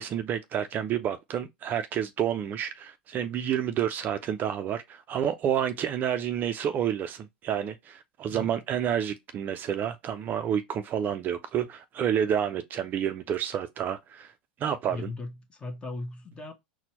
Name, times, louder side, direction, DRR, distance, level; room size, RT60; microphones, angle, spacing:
voice 1, 0.0-14.3 14.6-15.1, right 9 dB, 35° right, 0.4 m, -29 dB
voice 2, 14.9-16.5, left 2 dB, 20° left, 1.0 m, -37 dB
4.2 x 2.2 x 2.9 m
hypercardioid pair, 95°, 5 cm